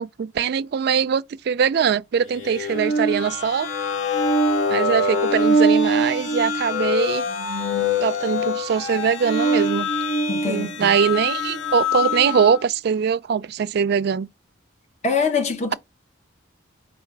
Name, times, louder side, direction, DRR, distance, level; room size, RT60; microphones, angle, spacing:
voice 1, 0.0-3.7 4.7-7.2 8.0-9.9 10.4-14.3, right 7 dB, 55° right, 0.3 m, -22 dB
sound 1, 2.3-12.6, left 1 dB, 80° left, 1.0 m, -23 dB
voice 2, 10.3-10.9 15.0-15.7, left 5 dB, 35° left, 0.8 m, -24 dB
4.8 x 2.3 x 4.5 m
head